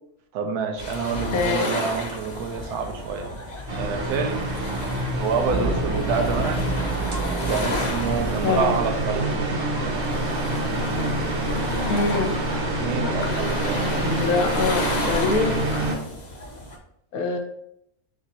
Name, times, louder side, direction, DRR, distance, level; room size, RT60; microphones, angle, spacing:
voice 1, 0.3-3.4 3.8-4.5 5.2-6.7 7.5-9.3 12.8-13.9, right 5 dB, 85° right, 4 dB, 1.1 m, -27 dB
sound 1, 0.8-16.8, equal, 40° left, 0.6 m, -33 dB
voice 2, 1.3-1.7 8.4-8.8 11.9-12.3 13.9-15.9 17.1-17.4, left 4 dB, 75° left, 3 dB, 1.2 m, -24 dB
sound 2, 3.7-15.9, right 1 dB, 55° right, 1.0 m, -27 dB
sound 3, 5.5-12.4, right 3 dB, 20° right, 1.3 m, -31 dB
3.7 x 2.8 x 4.1 m, 0.75 s
omnidirectional pair, 1.6 m